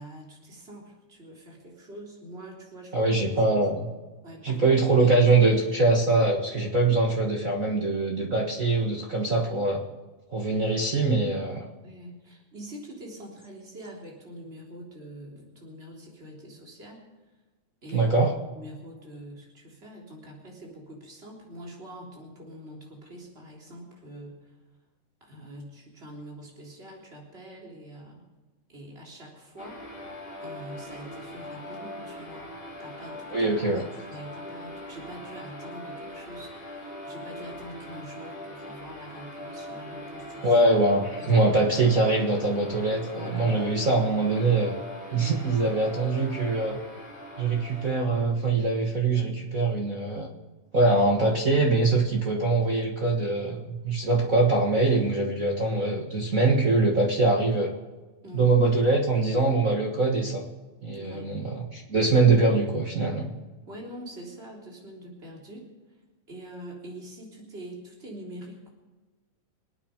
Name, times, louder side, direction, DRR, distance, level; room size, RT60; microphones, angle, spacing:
voice 1, 0.0-3.2 4.2-4.6 11.8-17.0 17.8-24.5 25.2-28.2 28.7-29.8 30.4-32.5 32.8-33.7 34.1-40.6 41.2-41.4 43.2-43.6 45.2-45.5 58.2-58.5 60.9-61.4 63.7-65.7 66.3-68.7, right 1 dB, 15° right, -2 dB, 3.5 m, -44 dB
voice 2, 2.9-3.9 4.4-9.8 10.3-11.7 17.9-18.3 33.3-33.8 40.4-44.7 45.1-46.8 47.4-50.3 50.7-57.7 58.3-60.5 60.8-63.3, right 3 dB, 50° right, -1 dB, 1.0 m, -23 dB
sound 1, 29.6-47.9, left 1 dB, 30° left, 4.0 m, -41 dB
25.5 x 9.1 x 5.2 m, 1.2 s
omnidirectional pair, 4.0 m